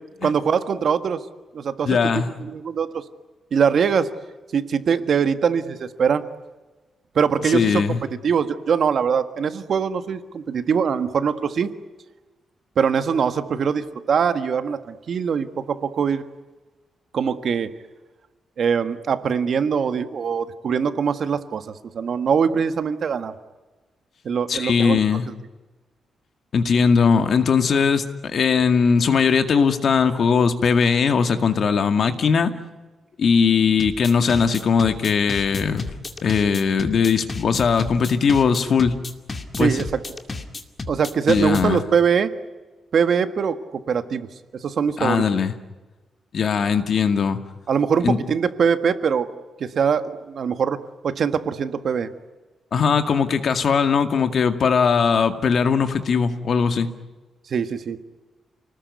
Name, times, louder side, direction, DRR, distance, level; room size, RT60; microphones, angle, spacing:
voice 1, 0.2-1.2 1.5-3.0 3.5-4.1 4.5-6.2 7.1-8.0 8.2-11.7 12.8-16.2 17.1-17.7 18.6-21.6 21.9-23.3 24.2-25.0 39.6-39.8 40.9-42.3 42.9-44.3 44.6-45.3 47.7-49.3 49.6-52.1 57.5-58.0, right 6 dB, 50° right, 10 dB, 1.6 m, -22 dB
voice 2, 1.8-2.3 7.4-8.0 24.5-25.3 26.5-32.5 33.2-35.8 36.2-39.0 39.6-39.8 41.3-41.8 45.0-45.5 46.3-47.4 48.0-48.2 52.7-56.9, left 6 dB, 50° left, 8 dB, 2.1 m, -19 dB
sound 1, 33.8-41.8, left 3 dB, 25° left, 2.4 m, -32 dB
29.5 x 20.0 x 9.6 m, 1.2 s
wide cardioid pair, 155°, 0 cm